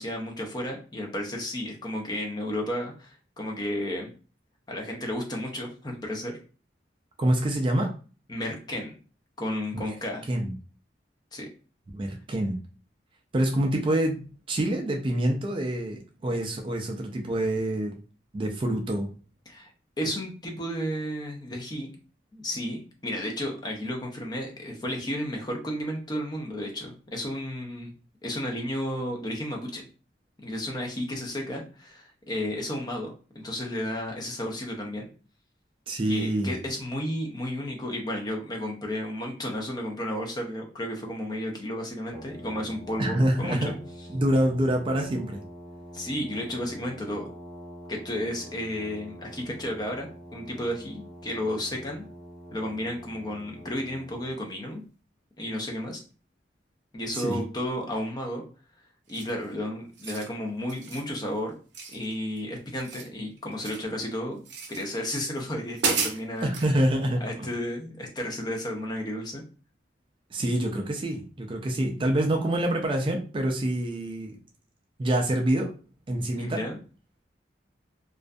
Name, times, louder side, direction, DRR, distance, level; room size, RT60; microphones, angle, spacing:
voice 1, 0.0-4.1 4.7-6.4 8.3-8.9 9.4-10.3 11.3-11.5 19.5-19.7 20.0-21.9 22.3-27.9 28.2-29.8 30.4-35.1 36.1-43.7 45.9-47.3 47.9-52.0 52.5-54.8 55.4-56.0 56.9-58.4 59.1-61.5 61.9-64.4 64.7-66.5 67.2-69.4 76.3-76.8, left 1 dB, 25° left, 1 dB, 0.5 m, -33 dB
voice 2, 7.2-7.9 9.7-9.9 10.3-10.5 11.9-12.6 13.3-18.0 18.3-19.1 35.9-36.5 43.0-43.8 44.1-45.4 57.1-57.4 66.4-67.5 70.3-74.4 75.0-75.7 76.1-76.6, right 1 dB, 30° right, 2 dB, 0.3 m, -26 dB
Brass instrument, 42.1-54.4, equal, 40° left, 1.2 m, -45 dB
sound 1, 59.1-59.4 59.9-60.3 60.7-61.1 61.7-62.4 62.7-63.9 64.4-64.8 65.4-65.5 65.7-66.7, right 5 dB, 75° right, 0.6 m, -32 dB
2.5 x 2.4 x 2.2 m, 0.37 s
head